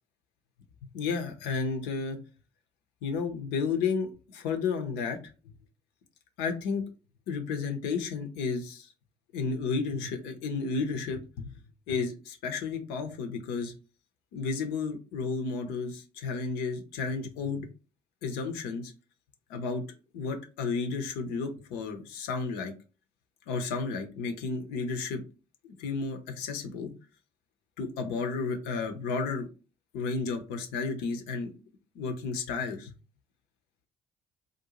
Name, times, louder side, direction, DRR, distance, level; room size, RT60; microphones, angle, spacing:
voice 1, 0.9-2.2 3.0-5.2 5.5-5.6 6.4-6.8 7.3-8.9 9.3-11.6 11.9-13.7 14.3-17.7 18.2-18.9 19.5-19.8 20.1-22.7 23.5-25.2 25.6-26.9 27.8-29.5 29.9-31.5 31.9-32.9, left 4 dB, 70° left, 6 dB, 0.6 m, -32 dB
2.5 x 2.1 x 2.9 m, 0.33 s
hypercardioid pair, 50°, 18 cm